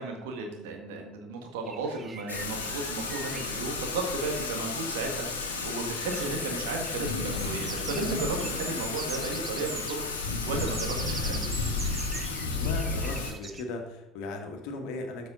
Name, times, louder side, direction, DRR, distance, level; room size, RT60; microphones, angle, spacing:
voice 1, 0.0-10.0 10.4-11.5, right 3 dB, 70° right, 2 dB, 1.7 m, -34 dB
sound 1, 1.7-13.6, right 4 dB, 30° right, 1.0 m, -43 dB
Thunder / Rain, 2.3-13.3, left 4 dB, 80° left, 1.1 m, -32 dB
voice 2, 12.5-15.3, left 3 dB, 65° left, 4 dB, 1.4 m, -37 dB
12.5 x 5.3 x 3.9 m, 1.1 s
figure-of-eight pair, 55°, 0 cm